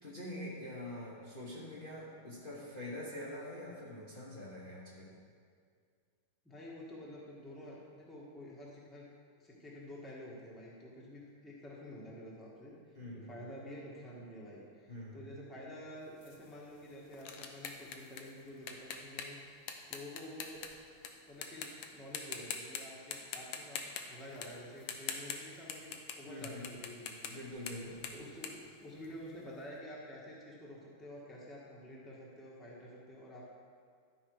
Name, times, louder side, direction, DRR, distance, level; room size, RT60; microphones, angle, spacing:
voice 1, 0.0-5.1 12.9-13.3 14.9-15.2 26.3-26.6 27.3-28.1, left 1 dB, 30° left, -7 dB, 1.3 m, -45 dB
voice 2, 6.4-9.1 9.4-19.4 19.9-20.6 21.2-27.4 28.1-33.4, left 1 dB, ahead, -5 dB, 1.4 m, -49 dB
sound 1, 16.2-21.1 21.4-21.9 22.1-22.8 23.1-26.2 26.4-29.4, left 7 dB, 75° left, 1.4 m, -43 dB
12.5 x 5.4 x 4.8 m, 2.2 s
omnidirectional pair, 2.3 m